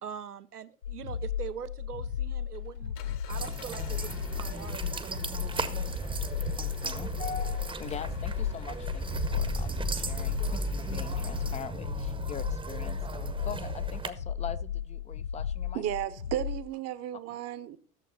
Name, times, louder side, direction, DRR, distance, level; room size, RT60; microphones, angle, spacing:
voice 1, 0.0-2.9 3.3-6.0, right 8 dB, 85° right, 0.7 m, -43 dB
sound 1, 0.8-16.7, left 8 dB, 85° left, 0.6 m, -35 dB
Engine, 2.1-11.6, left 7 dB, 55° left, 1.5 m, -49 dB
sound 2, 3.3-14.1, right 3 dB, 10° right, 0.9 m, -36 dB
voice 2, 6.3-15.8, left 7 dB, 15° left, 0.5 m, -42 dB
voice 3, 15.7-17.8, right 12 dB, 35° right, 0.9 m, -34 dB
14.0 x 7.2 x 4.1 m
figure-of-eight pair, 75°, 45 cm